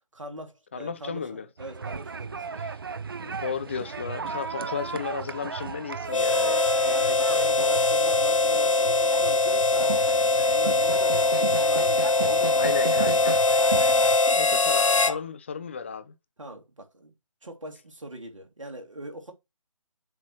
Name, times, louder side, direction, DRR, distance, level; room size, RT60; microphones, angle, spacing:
voice 1, 0.1-2.7 4.5-4.7 6.7-13.5 14.0-14.6 15.0-15.2 16.4-17.1 17.4-19.3, right 1 dB, 70° right, 2.4 m, -41 dB
voice 2, 0.7-1.5 2.5-2.7 3.2-6.6 12.5-13.4 14.4-16.1, left 6 dB, 20° left, 0.4 m, -34 dB
sound 1, 1.6-14.2, right 5 dB, 45° right, 0.5 m, -35 dB
Harmonica, 6.1-15.2, left 3 dB, 70° left, 0.7 m, -22 dB
7.5 x 3.0 x 6.1 m
figure-of-eight pair, 150°, 17 cm